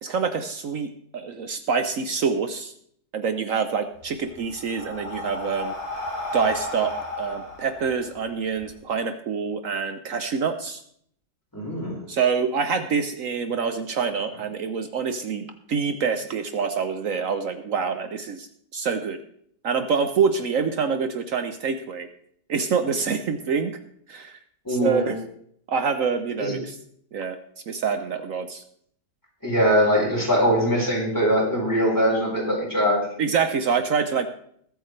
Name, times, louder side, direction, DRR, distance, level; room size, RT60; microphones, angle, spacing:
voice 1, 0.0-2.7 3.1-5.7 6.3-10.8 12.1-18.5 18.7-19.2 19.6-22.1 22.5-23.8 24.1-24.4 24.7-25.2 25.7-26.8 27.1-27.4 27.7-28.6 33.2-34.3, right 6 dB, 65° right, 8 dB, 1.1 m, -26 dB
Breathing, 4.0-8.7, left 2 dB, 80° left, 4.0 m, -33 dB
voice 2, 11.5-12.0 24.6-25.1 26.4-26.5 29.4-33.0, equal, 10° left, -3 dB, 4.7 m, -22 dB
21.0 x 8.6 x 3.2 m, 0.65 s
omnidirectional pair, 1.6 m